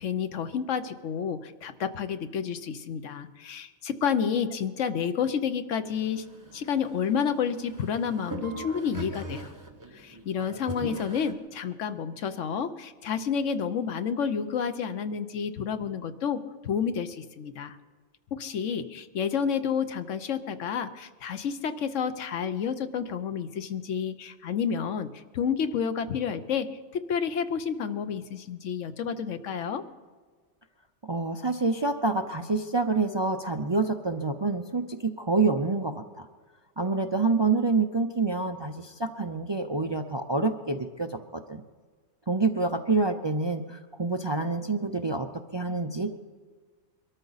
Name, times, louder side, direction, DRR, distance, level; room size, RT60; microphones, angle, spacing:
voice 1, 0.0-6.2 6.5-9.5 9.9-17.8 18.3-25.1 25.3-26.7 26.9-29.8, left 7 dB, 85° left, 10 dB, 1.2 m, -30 dB
sound 1, 5.8-11.3, right 2 dB, 15° right, 1.2 m, -41 dB
voice 2, 31.1-36.3 36.8-41.6 42.3-46.1, right 3 dB, 40° right, 6 dB, 0.4 m, -27 dB
23.0 x 13.0 x 4.0 m, 1.5 s
omnidirectional pair, 1.2 m